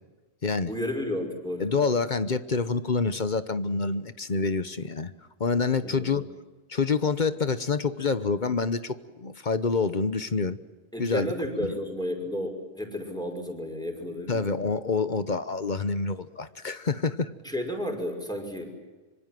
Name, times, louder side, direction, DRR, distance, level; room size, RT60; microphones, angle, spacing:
voice 1, 0.7-1.7 5.8-6.2 10.9-14.4 17.4-18.7, left 1 dB, 5° left, 2 dB, 5.6 m, -32 dB
voice 2, 1.6-5.1 5.4-6.2 6.7-10.6 11.0-11.3 11.6-11.7 14.3-17.3, left 4 dB, 45° left, 13 dB, 1.1 m, -27 dB
26.0 x 24.5 x 7.6 m, 1.2 s
omnidirectional pair, 1.1 m